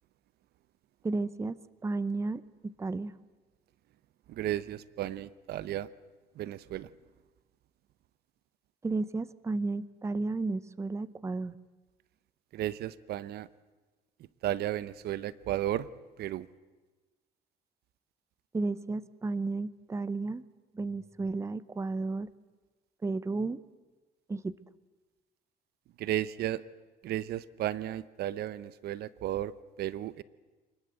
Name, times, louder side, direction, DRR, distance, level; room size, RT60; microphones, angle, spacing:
voice 1, 1.0-1.6 1.8-3.1 8.8-11.6 18.5-20.4 20.7-22.3 23.0-23.6 24.3-24.5, right 3 dB, 15° right, 17 dB, 0.7 m, -33 dB
voice 2, 4.3-5.9 6.4-6.9 12.5-13.5 14.4-15.9 16.2-16.5 26.0-26.6 27.0-29.5 29.8-30.2, right 13 dB, 70° right, 18 dB, 0.8 m, -34 dB
26.5 x 20.0 x 8.0 m, 1.2 s
cardioid pair, 110°, 17 cm